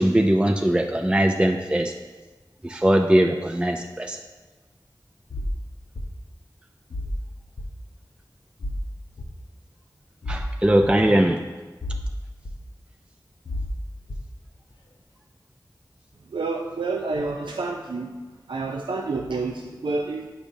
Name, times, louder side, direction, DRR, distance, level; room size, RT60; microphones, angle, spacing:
voice 1, 0.0-1.9 2.6-4.2 10.3-11.4, right 1 dB, 15° right, 3 dB, 0.4 m, -20 dB
sound 1, 5.3-5.5 6.0-6.1 6.9-7.2 7.6-7.7 8.6-8.8 9.2-9.3 10.2-10.4 10.8-10.9 11.8-12.1 12.4-12.5 13.5-13.7 14.1-14.2, left 1 dB, 70° left, 0.8 m, -30 dB
voice 2, 16.3-18.1 18.5-20.3, right 3 dB, 90° right, 2 dB, 0.4 m, -28 dB
8.5 x 5.1 x 2.7 m, 1.3 s
wide cardioid pair, 40°, 8 cm